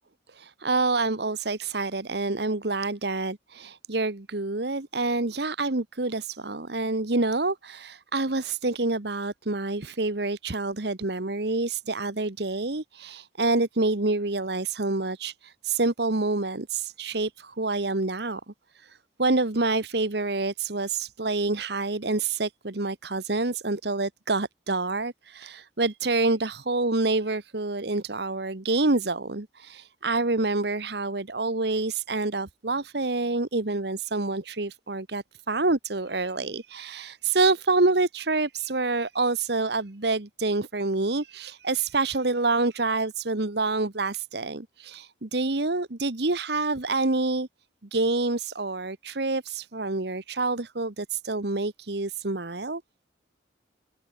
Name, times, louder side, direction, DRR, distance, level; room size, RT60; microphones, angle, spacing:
voice 1, 0.3-18.4 18.7-47.5 47.9-52.8, right 3 dB, 60° right, 1.3 m, -27 dB
head